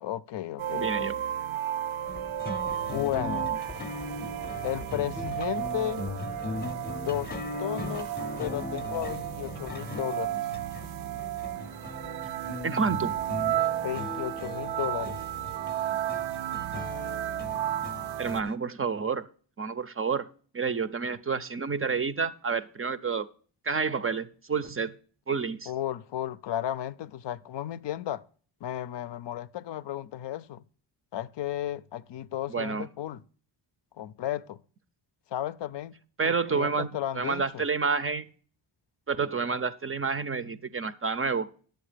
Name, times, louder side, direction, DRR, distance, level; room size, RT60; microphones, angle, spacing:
voice 1, 0.0-1.1 2.9-3.5 4.6-6.0 7.0-7.3 7.6-10.5 13.8-15.2 25.7-28.2 28.6-30.6 31.1-33.2 34.0-34.6 35.3-35.9 36.2-37.6, left 12 dB, 65° left, 0.5 m, -34 dB
sound 1, 0.6-18.4, right 12 dB, 80° right, 0.6 m, -33 dB
voice 2, 0.7-1.2 12.6-13.2 18.2-19.3 19.6-20.3 20.5-23.3 23.6-25.0 25.3-25.7 32.5-32.9 36.2-38.3 39.1-41.5, right 5 dB, 30° right, 0.5 m, -29 dB
sound 2, 2.1-18.6, left 3 dB, 20° left, 0.7 m, -39 dB
10.5 x 8.0 x 5.0 m
wide cardioid pair, 140°, 47 cm